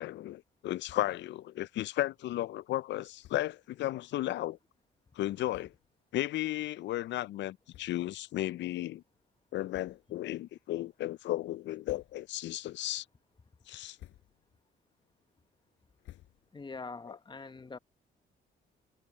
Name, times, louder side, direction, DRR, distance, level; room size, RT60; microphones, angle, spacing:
voice 1, 0.0-4.6 5.2-5.7 6.1-9.0 9.5-13.0 13.7-14.0, left 14 dB, 65° left, 0.4 m, -34 dB
sound 1, 0.8-1.3 1.6-1.7 2.0-2.2 3.2-3.6 4.3-4.5 5.1-5.2 5.5-6.0 6.6-6.7 7.7-8.3 8.7-8.8 9.7-10.3 10.7-11.2 11.6-12.5 12.9-13.3 13.7-14.6 14.9-16.8, left 14 dB, 85° left, 4.4 m, -57 dB
voice 2, 16.5-17.8, left 4 dB, 25° left, 0.9 m, -43 dB
cardioid pair, 90°, 20 cm